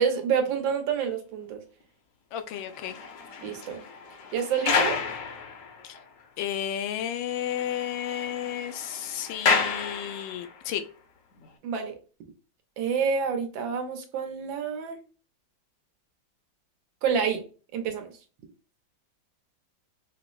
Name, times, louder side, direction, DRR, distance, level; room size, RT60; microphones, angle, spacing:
voice 1, 0.0-1.6 3.4-3.8 4.3-5.0 11.6-11.9 12.8-15.0 17.0-17.4 17.7-18.1, right 6 dB, 85° right, 4 dB, 1.5 m, -28 dB
voice 2, 2.3-3.0 5.8-6.0 6.4-10.8, left 10 dB, 85° left, 8 dB, 1.3 m, -32 dB
sound 1, 2.5-6.2 6.5-6.6 7.0-7.1 7.4-10.6 11.3-11.5, left 5 dB, 65° left, 0.9 m, -31 dB
4.9 x 2.0 x 2.3 m, 0.36 s
omnidirectional pair, 2.0 m